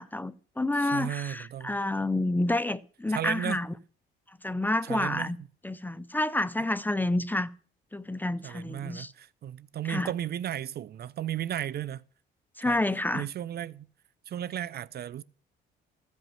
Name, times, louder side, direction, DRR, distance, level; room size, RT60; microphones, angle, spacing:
voice 1, 0.0-3.7 4.4-5.4 5.6-7.5 7.9-9.1 9.9-10.1 12.6-13.3, left 2 dB, 10° left, 0.5 m, -29 dB
voice 2, 0.8-1.7 3.1-3.6 4.8-5.3 8.4-12.0 12.6-12.8 13.1-13.9 14.3-15.2, right 11 dB, 55° right, 0.5 m, -34 dB
15.0 x 5.3 x 7.3 m
cardioid pair, 90°, 20 cm